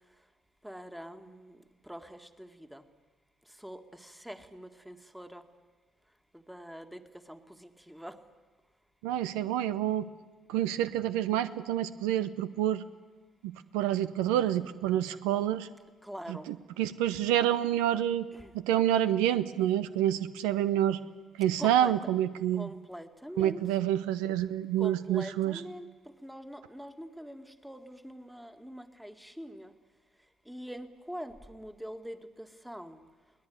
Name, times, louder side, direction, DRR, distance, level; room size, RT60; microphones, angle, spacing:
voice 1, 0.6-1.6 1.9-2.8 3.6-5.4 6.5-7.0 7.3-8.2 16.0-16.5 18.3-18.5 21.6-22.0 22.6-23.6 24.8-25.9 26.2-29.7 30.5-33.0, equal, 5° right, 8 dB, 2.0 m, -44 dB
voice 2, 9.0-10.1 10.5-12.8 13.7-15.7 16.3-16.4 16.8-18.2 18.7-21.0 21.4-22.7 23.4-25.6, right 11 dB, 80° right, 13 dB, 0.7 m, -28 dB
22.0 x 18.0 x 9.6 m, 1.3 s
hypercardioid pair, 55°, 0 cm